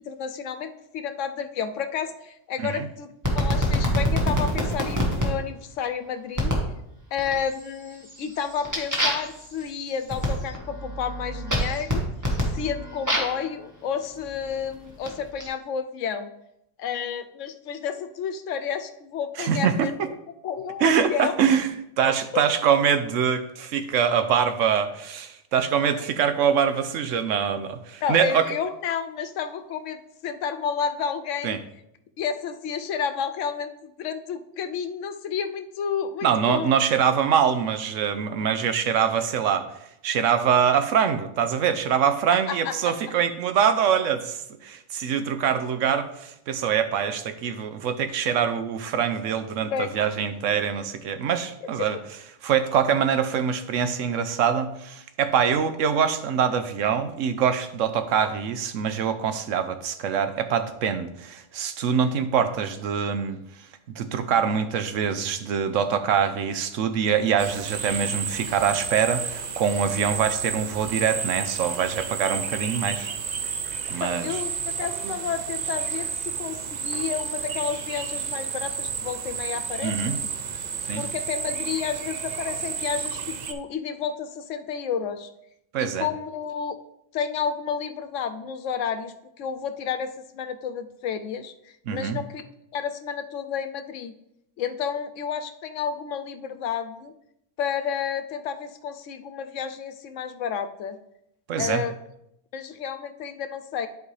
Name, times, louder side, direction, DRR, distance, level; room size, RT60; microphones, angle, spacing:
voice 1, 0.0-6.5 7.1-12.0 12.5-16.3 16.8-19.9 20.4-21.3 22.0-22.4 28.0-31.6 32.2-36.7 42.5-42.9 49.7-50.1 74.0-74.5 74.8-80.3 81.0-85.3 85.8-86.8 87.1-92.5 92.7-94.1 94.6-97.1 97.6-101.0 101.6-101.9 102.5-103.9, left 7 dB, 85° left, 9 dB, 1.0 m, -31 dB
sound 1, 3.2-5.3 6.4-6.7 7.2-7.7 8.0-13.4 14.2-15.5, equal, 15° right, 1.5 m, -26 dB
voice 2, 19.4-20.1 20.8-21.7 22.0-28.5 31.4-31.6 36.2-39.7 40.0-52.0 52.4-63.4 64.0-73.1 73.9-74.4 79.8-80.2 80.9-81.0 85.7-86.1 91.9-92.2 101.5-101.8, right 7 dB, 85° right, 10 dB, 1.1 m, -24 dB
sound 2, 67.4-83.5, right 6 dB, 50° right, 0.6 m, -31 dB
11.0 x 4.6 x 3.2 m, 0.80 s
omnidirectional pair, 1.3 m